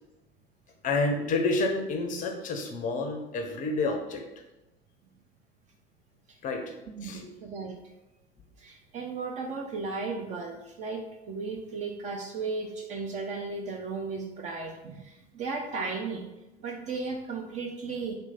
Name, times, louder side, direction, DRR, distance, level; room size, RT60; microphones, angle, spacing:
voice 1, 0.8-4.2 6.4-6.7 7.0-7.3, left 3 dB, 25° left, 4 dB, 0.5 m, -29 dB
voice 2, 7.0-7.8 8.6-16.3 16.6-18.2, right 4 dB, 25° right, 2 dB, 0.3 m, -35 dB
4.4 x 2.1 x 3.9 m, 0.98 s
figure-of-eight pair, 70°, 30 cm